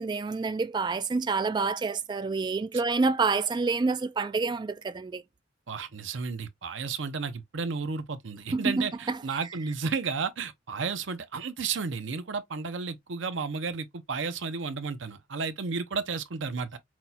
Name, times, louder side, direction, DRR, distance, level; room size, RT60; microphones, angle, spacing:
voice 1, 0.0-5.2 8.5-9.2, right 4 dB, 25° right, 0.3 m, -28 dB
voice 2, 5.7-16.8, right 5 dB, 70° right, 0.7 m, -32 dB
5.9 x 2.3 x 2.7 m
head